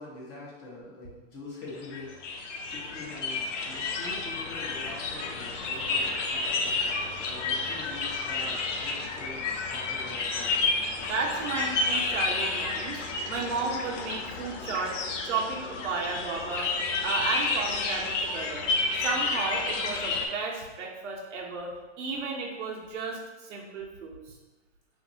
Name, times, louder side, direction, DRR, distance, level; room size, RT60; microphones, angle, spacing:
voice 1, 0.0-10.7, left 2 dB, 30° left, -5 dB, 0.8 m, -44 dB
sound 1, 1.7-20.3, left 3 dB, 75° left, 0.6 m, -31 dB
voice 2, 11.0-13.0 13.3-15.0 15.2-16.7 17.0-18.7 19.0-24.2, right 4 dB, 70° right, 0 dB, 0.8 m, -33 dB
2.8 x 2.6 x 2.7 m, 1.1 s
hypercardioid pair, 140°, 37 cm